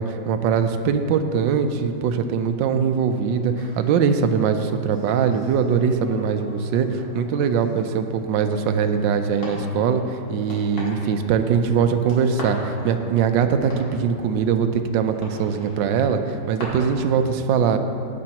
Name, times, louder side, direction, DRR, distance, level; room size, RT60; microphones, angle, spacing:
voice 1, 0.0-17.8, right 6 dB, 80° right, 8 dB, 1.3 m, -22 dB
sound 1, 3.0-16.6, left 1 dB, 85° left, 2.9 m, -42 dB
14.5 x 9.4 x 2.9 m, 2.7 s
omnidirectional pair, 2.0 m